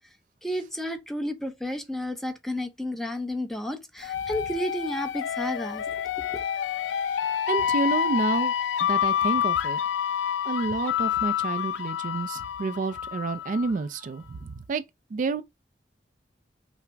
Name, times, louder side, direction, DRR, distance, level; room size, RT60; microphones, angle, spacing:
voice 1, 0.4-6.4, left 1 dB, ahead, 0.6 m, -32 dB
sound 1, 4.0-13.7, left 9 dB, 90° left, 0.3 m, -28 dB
voice 2, 7.5-8.5 8.8-9.8 10.5-14.8 15.1-15.4, right 3 dB, 45° right, 0.3 m, -29 dB
5.7 x 2.0 x 3.4 m
head